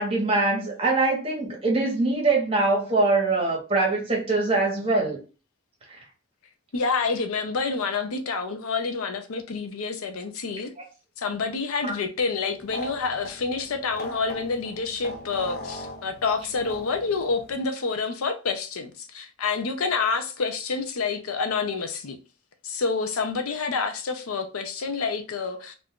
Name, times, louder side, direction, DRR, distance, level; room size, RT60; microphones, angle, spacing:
voice 1, 0.0-5.2 5.9-6.0 11.8-11.9, right 3 dB, 25° right, 0.9 m, -23 dB
voice 2, 6.7-10.7 11.2-22.2 22.6-25.7, left 4 dB, 80° left, 0.5 m, -28 dB
sound 1, 12.6-17.6, left 1 dB, 45° left, 0.7 m, -40 dB
2.6 x 2.3 x 3.5 m
head